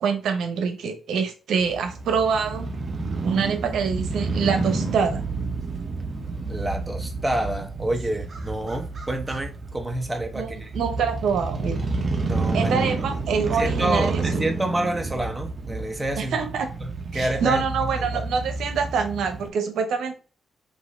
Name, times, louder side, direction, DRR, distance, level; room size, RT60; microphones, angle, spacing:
voice 1, 0.0-2.7 3.2-5.2 10.3-11.8 12.5-14.2 16.2-16.7 17.1-20.1, right 6 dB, 85° right, 0.8 m, -25 dB
Crow / Motorcycle, 1.6-19.5, right 3 dB, 40° right, 0.8 m, -30 dB
voice 2, 6.5-10.7 12.3-12.9 13.5-16.4 17.1-17.6 18.0-18.2, right 1 dB, 15° right, 0.8 m, -28 dB
5.4 x 2.6 x 3.2 m
cardioid pair, 95°, 0 cm